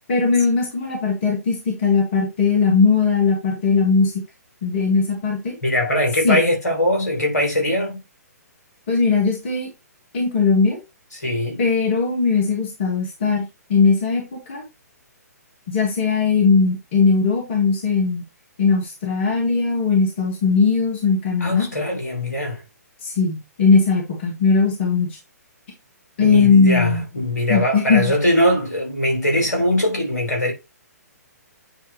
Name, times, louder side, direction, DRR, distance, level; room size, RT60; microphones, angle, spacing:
voice 1, 0.1-4.1 4.6-5.6 6.2-6.4 8.9-9.7 10.1-10.8 11.6-13.4 13.7-14.6 15.7-18.2 18.6-21.7 23.0-25.2 26.2-27.0 27.5-28.1, left 4 dB, 45° left, 2.6 m, -19 dB
voice 2, 5.6-8.0 11.1-11.6 21.4-22.6 26.2-30.5, left 1 dB, 75° left, 3.2 m, -21 dB
9.1 x 3.7 x 3.1 m
figure-of-eight pair, 125°, 9 cm